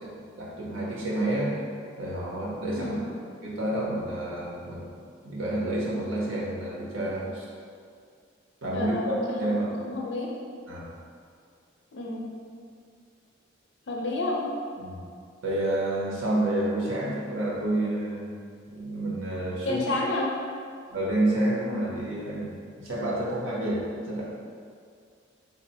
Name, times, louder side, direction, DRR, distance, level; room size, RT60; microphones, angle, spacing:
voice 1, 0.4-1.5 2.0-3.0 3.4-4.9 5.2-7.4 8.6-9.7 10.7-10.9 14.8-15.0 15.4-18.3 18.7-19.9 20.9-22.5 22.8-24.2, right 1 dB, 85° right, -5 dB, 1.0 m, -29 dB
voice 2, 8.7-9.5 9.8-10.3 11.9-12.3 13.9-14.4 19.6-20.3, left 2 dB, 60° left, -2 dB, 0.6 m, -30 dB
4.0 x 2.1 x 4.1 m, 2.2 s
head